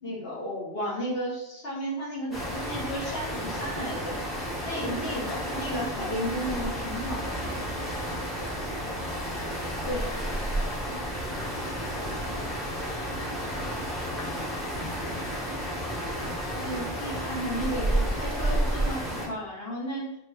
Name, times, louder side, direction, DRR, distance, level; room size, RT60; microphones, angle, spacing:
voice 1, 0.0-4.2 4.6-7.6 9.8-10.0 16.6-20.1, equal, 55° left, -4 dB, 1.4 m, -33 dB
sound 1, 2.3-19.3, equal, ahead, 0.9 m, -31 dB
voice 2, 10.3-14.6, equal, 30° left, -4 dB, 0.8 m, -54 dB
4.9 x 2.2 x 3.4 m, 0.82 s
omnidirectional pair, 1.3 m